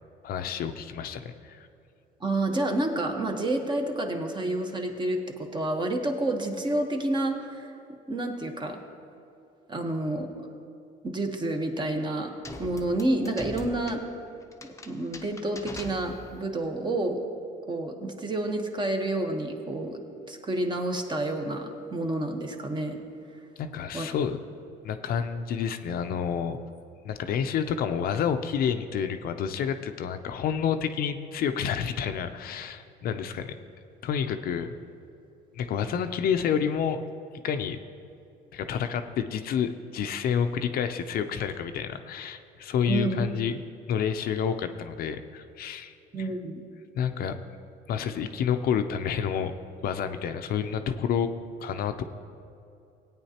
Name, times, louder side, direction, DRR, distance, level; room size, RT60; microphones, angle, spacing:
voice 1, 0.2-1.7 23.6-24.4 24.8-26.6 27.0-33.5 34.0-34.7 35.5-37.1 37.4-37.8 38.5-43.6 43.9-45.9 46.9-47.4 47.9-49.5 49.8-51.3 51.6-52.0, left 7 dB, 60° left, 8 dB, 0.5 m, -29 dB
voice 2, 2.2-7.7 8.1-8.8 9.7-10.5 11.0-12.3 12.6-14.0 14.8-17.2 17.7-20.0 20.3-23.0 23.9-24.1 42.9-43.2 46.1-46.6, right 2 dB, 25° right, 4 dB, 1.1 m, -29 dB
sound 1, 12.4-16.5, left 2 dB, 15° left, 0.7 m, -42 dB
17.0 x 9.1 x 2.9 m, 2.6 s
cardioid pair, 110°, 17 cm